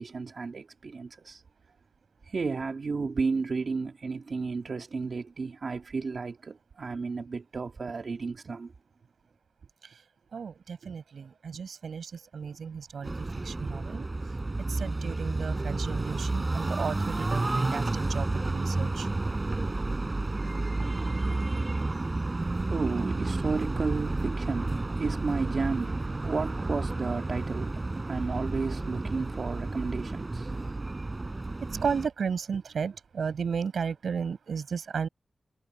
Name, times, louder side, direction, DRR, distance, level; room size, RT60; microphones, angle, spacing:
voice 1, 0.0-1.4 2.2-8.7 21.7-30.8, right 4 dB, 55° right, 2.3 m, -33 dB
voice 2, 10.3-13.1 13.5-14.1 14.8-19.1 31.8-35.1, right 6 dB, 90° right, 7.9 m, -34 dB
sound 1, 13.0-32.1, right 2 dB, 25° right, 5.5 m, -31 dB
wide cardioid pair, 140°, 0 cm